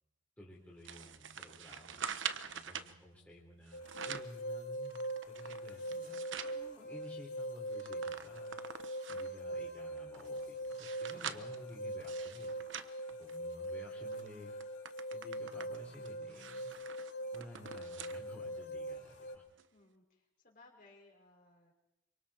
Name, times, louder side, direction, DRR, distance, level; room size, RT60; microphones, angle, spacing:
voice 1, 0.4-5.0 5.3-8.5 9.1-12.6 13.2-14.5 15.1-16.7 17.3-19.4, equal, 10° left, -4 dB, 4.0 m, -54 dB
sound 1, 0.8-2.9 3.7-4.4 4.8-6.6 7.0-7.1 7.4-9.4 10.0-13.7 14.1-14.3 14.6-18.2 18.6-18.7 19.6-19.7, right 7 dB, 75° right, 1.0 m, -45 dB
sound 2, 3.7-19.3, right 1 dB, 80° left, 5.3 m, -42 dB
voice 2, 19.7-21.7, left 2 dB, 45° left, 0 dB, 5.2 m, -62 dB
27.5 x 25.0 x 4.4 m, 0.88 s
head